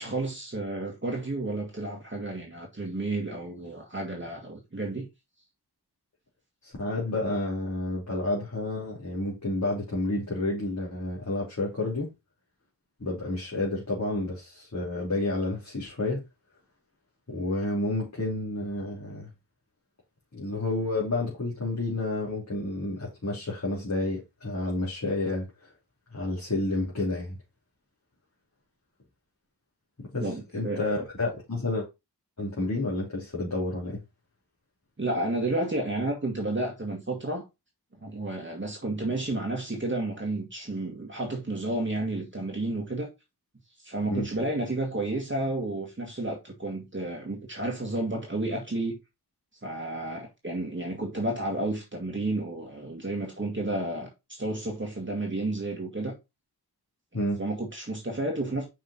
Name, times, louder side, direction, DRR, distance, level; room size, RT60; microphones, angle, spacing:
voice 1, 0.0-5.1 30.2-30.8 35.0-37.4 38.0-43.1 43.8-49.0 49.6-56.2 57.4-58.7, right 2 dB, 30° right, 2.0 m, -31 dB
voice 2, 6.6-12.1 13.0-16.2 17.3-19.3 20.3-25.7 26.1-27.4 30.0-30.3 30.5-31.9 32.4-34.0 44.1-44.3 57.1-57.4, left 2 dB, 45° left, 3.2 m, -30 dB
5.7 x 5.4 x 4.2 m
wide cardioid pair, 80°, 40 cm